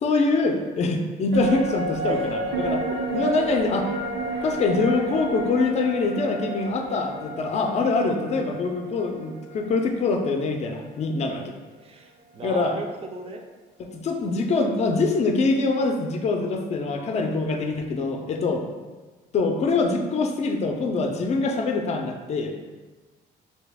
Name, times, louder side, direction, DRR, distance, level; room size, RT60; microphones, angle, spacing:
voice 1, 0.0-2.8 3.1-3.9 4.4-11.5 12.4-12.8 13.8-18.6 19.3-22.5, left 3 dB, 40° left, 4 dB, 0.5 m, -24 dB
sound 1, 1.3-10.8 11.1-11.2, right 2 dB, 90° right, 0.7 m, -31 dB
voice 2, 11.8-13.4, right 3 dB, 35° right, 3 dB, 0.4 m, -36 dB
3.0 x 2.8 x 3.4 m, 1.3 s
cardioid pair, 110°, 17 cm